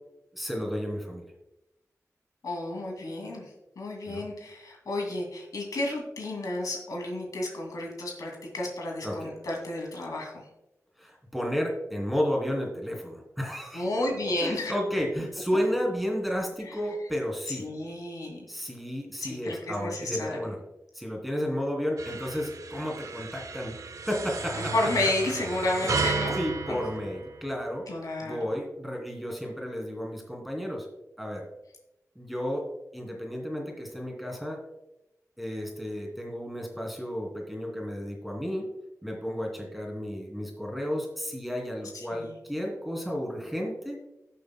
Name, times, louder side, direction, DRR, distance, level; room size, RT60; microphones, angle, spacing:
voice 1, 0.3-1.3 4.1-4.3 9.0-9.3 11.0-13.9 14.4-17.7 18.5-20.6 20.9-23.7 24.1-24.7 25.8-26.0 26.3-27.8 28.2-30.9 31.2-31.5 32.2-32.7 32.9-34.6 35.4-38.7 39.0-44.0, equal, ahead, -1 dB, 2.7 m, -32 dB
voice 2, 2.4-3.5 3.8-10.4 13.7-14.7 17.5-18.4 19.2-20.4 24.7-26.4 26.7-26.8 27.9-28.4 42.1-42.3, left 2 dB, 85° left, 0 dB, 2.4 m, -31 dB
sound 1, 22.0-27.8, right 4 dB, 65° right, 0.6 m, -34 dB
18.0 x 6.8 x 2.2 m, 0.92 s
wide cardioid pair, 80°, 6 cm